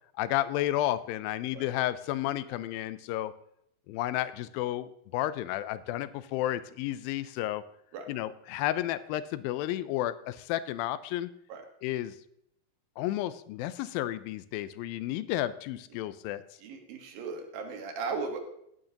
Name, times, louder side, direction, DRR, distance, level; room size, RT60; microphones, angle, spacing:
voice 1, 0.2-3.3 3.9-7.6 8.1-11.3 11.8-12.2 13.0-16.4, left 14 dB, 85° left, 15 dB, 2.3 m, -32 dB
voice 2, 16.6-18.4, right 4 dB, 75° right, 4 dB, 3.2 m, -36 dB
17.5 x 9.2 x 2.9 m, 0.75 s
omnidirectional pair, 4.2 m